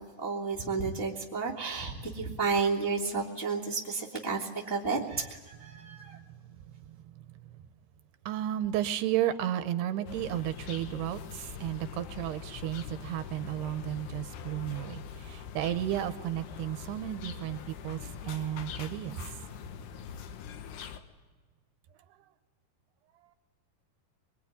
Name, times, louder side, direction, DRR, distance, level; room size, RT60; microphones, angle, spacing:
voice 1, 0.0-6.2, right 4 dB, 10° left, -4 dB, 1.8 m, -32 dB
voice 2, 5.8-7.6 8.3-19.4, right 12 dB, 80° right, 10 dB, 2.9 m, -34 dB
sound 1, 10.1-21.0, left 7 dB, 75° left, 3.2 m, -43 dB
23.5 x 22.0 x 9.4 m, 1.3 s
omnidirectional pair, 4.8 m